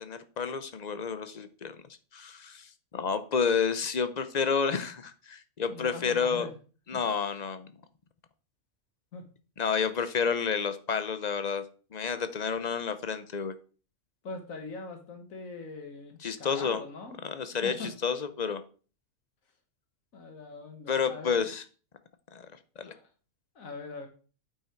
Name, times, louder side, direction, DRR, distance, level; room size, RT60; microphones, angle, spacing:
voice 1, 0.0-1.8 2.1-6.5 6.9-7.7 9.6-11.6 11.9-13.5 16.2-16.8 17.2-18.6 20.9-21.6 22.3-22.5 22.8-22.9, left 6 dB, 40° left, 11 dB, 0.6 m, -30 dB
voice 2, 5.7-6.5 6.9-7.0 9.1-9.3 14.2-17.9 20.1-21.4 22.8-23.1 23.5-24.1, left 3 dB, 85° left, 5 dB, 1.7 m, -42 dB
8.6 x 5.6 x 4.5 m, 0.38 s
omnidirectional pair, 1.4 m